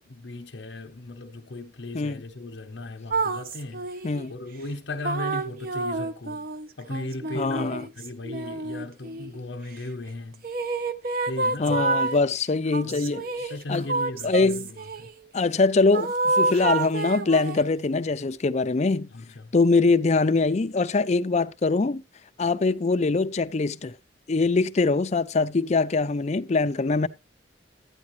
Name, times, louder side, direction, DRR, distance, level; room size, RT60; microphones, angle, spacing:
voice 1, 0.0-3.9 4.3-6.5 6.8-10.4 11.3-11.9 12.8-14.7 15.0-15.1 19.1-19.4, left 2 dB, 75° left, 1.0 m, -37 dB
sound 1, 3.1-4.3 5.0-9.4 10.4-12.2 12.7-15.1 15.9-17.7, right 3 dB, 50° right, 0.7 m, -28 dB
voice 2, 7.3-7.9 11.6-13.9 14.2-14.7 15.3-19.1 19.5-22.0 22.4-23.9 24.3-27.1, left 3 dB, 40° left, 0.5 m, -23 dB
13.0 x 9.5 x 3.1 m
head